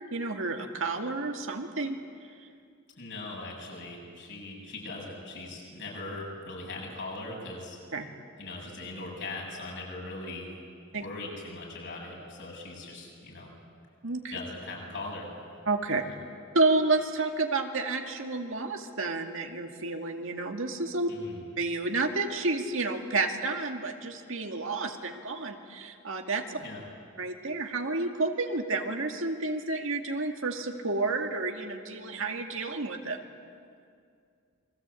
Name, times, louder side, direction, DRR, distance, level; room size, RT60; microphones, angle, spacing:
voice 1, 0.1-2.0 7.9-8.1 10.9-11.0 14.0-14.4 15.7-16.0 16.5-21.1 21.6-26.6 27.2-33.2, right 3 dB, 65° right, 3 dB, 2.2 m, -30 dB
voice 2, 3.0-7.8 8.4-10.5 10.9-13.5 14.3-15.3 15.9-16.1 21.1-21.4 26.6-26.8, left 2 dB, 60° left, -2 dB, 7.9 m, -40 dB
28.5 x 22.5 x 8.4 m, 2.3 s
head